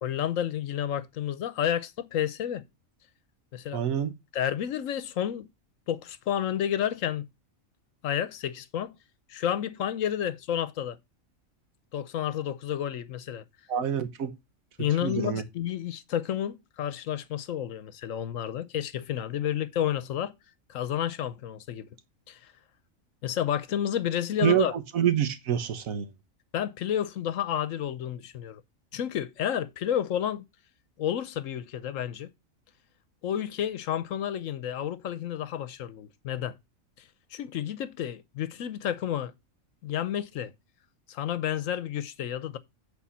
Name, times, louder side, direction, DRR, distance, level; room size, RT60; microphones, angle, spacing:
voice 1, 0.0-2.6 3.5-3.8 4.3-5.5 5.9-7.3 8.0-8.9 9.3-11.0 11.9-13.4 14.8-20.3 20.7-21.9 22.3-22.4 23.2-24.7 26.5-28.6 28.9-30.5 31.0-32.3 33.2-36.6 37.3-39.3 39.8-40.5 41.1-42.6, left 10 dB, 75° left, 1.1 m, -30 dB
voice 2, 3.7-4.1 13.7-14.3 15.0-15.4 24.4-26.1, right 9 dB, 90° right, 1.4 m, -26 dB
8.5 x 4.2 x 5.6 m
omnidirectional pair, 1.4 m